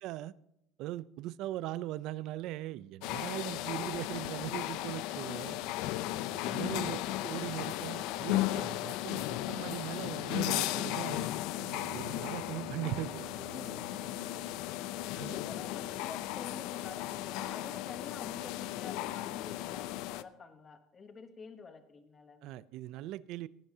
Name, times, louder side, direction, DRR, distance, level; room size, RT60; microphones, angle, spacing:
voice 1, 0.0-0.3 0.8-5.6 6.3-11.3 11.9-13.3 15.2-15.6 22.4-23.5, right 15 dB, 55° right, 19 dB, 0.4 m, -40 dB
sound 1, 3.0-20.2, left 15 dB, 65° left, 0.5 m, -36 dB
sound 2, 11.6-15.3, right 8 dB, 80° right, 4.2 m, -51 dB
voice 2, 12.9-13.9 15.3-22.5, left 4 dB, 20° left, 8 dB, 0.9 m, -49 dB
17.5 x 10.0 x 2.8 m, 0.81 s
cardioid pair, 160°, 0 cm